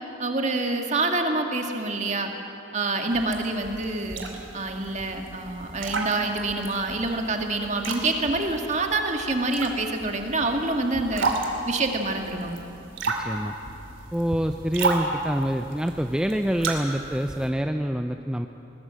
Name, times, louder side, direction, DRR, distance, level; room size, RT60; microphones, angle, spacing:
voice 1, 0.2-2.3 2.7-4.2 4.5-11.3 11.6-12.6, right 2 dB, 35° right, 3 dB, 1.9 m, -26 dB
sound 1, 3.1-17.5, right 3 dB, 85° right, 2.8 m, -33 dB
voice 2, 13.2-13.5 14.1-18.5, equal, 5° right, 6 dB, 0.4 m, -26 dB
21.0 x 20.0 x 7.6 m, 2.9 s
head